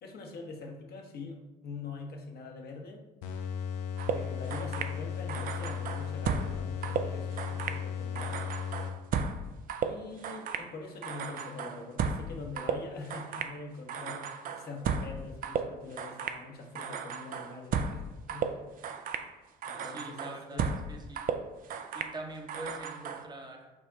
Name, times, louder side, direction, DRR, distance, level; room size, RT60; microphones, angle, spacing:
voice 1, 0.0-3.1 4.1-8.4 9.8-14.3 14.6-18.6 19.7-20.8, left 3 dB, 50° left, 2 dB, 0.9 m, -44 dB
sound 1, 3.2-9.3, left 7 dB, 70° left, 0.5 m, -36 dB
sound 2, 4.0-5.0 5.3-6.6 6.8-7.8 8.2-10.7 11.0-12.3 12.6-13.6 13.9-15.2 15.4-16.4 16.8-18.0 18.3-19.3 19.6-20.9 21.2-22.2 22.5-23.3, right 6 dB, 45° right, 0.4 m, -34 dB
voice 2, 19.8-21.2 21.9-23.7, right 2 dB, 20° right, 3 dB, 0.8 m, -44 dB
4.7 x 2.2 x 3.9 m, 1.1 s
hypercardioid pair, 60°, 21 cm